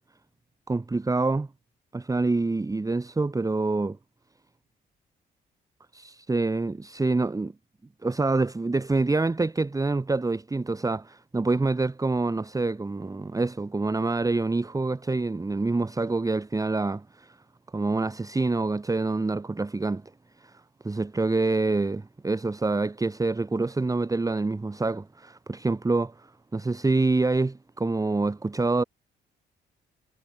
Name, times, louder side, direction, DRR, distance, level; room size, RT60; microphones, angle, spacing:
voice 1, 0.7-1.5 1.9-4.0 5.9-7.5 8.0-17.4 17.7-20.0 20.4-28.8, right 3 dB, 15° right, 1.4 m, -26 dB
cardioid pair, 90°, 20 cm